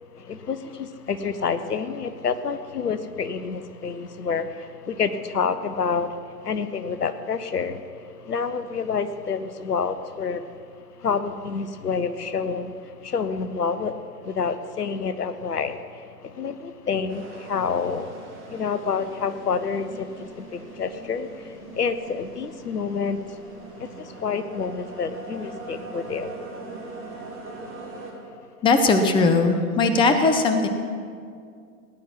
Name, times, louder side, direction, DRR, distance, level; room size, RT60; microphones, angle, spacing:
voice 1, 0.2-6.2 6.4-7.8 8.2-10.4 11.0-12.7 13.0-14.0 14.2-18.1 18.5-23.2 23.8-26.3, left 5 dB, 80° left, 12 dB, 1.0 m, -28 dB
sound 1, 17.1-28.1, right 3 dB, 25° right, 3.0 m, -41 dB
voice 2, 28.6-30.7, left 3 dB, 10° left, 7 dB, 0.8 m, -19 dB
17.5 x 10.0 x 5.9 m, 2.2 s
figure-of-eight pair, 105°, 47 cm